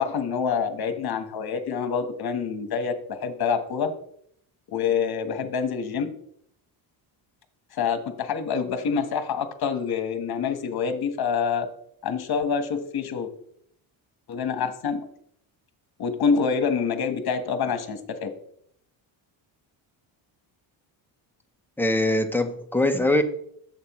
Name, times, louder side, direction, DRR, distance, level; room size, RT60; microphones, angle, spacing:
voice 1, 0.0-3.9 4.7-6.1 7.7-11.7 12.0-13.3 14.3-15.0 16.0-18.3, left 6 dB, 50° left, 9 dB, 1.2 m, -26 dB
voice 2, 21.8-23.2, left 1 dB, 5° left, 5 dB, 0.7 m, -22 dB
11.0 x 7.5 x 3.0 m, 0.67 s
cardioid pair, 135°, 49 cm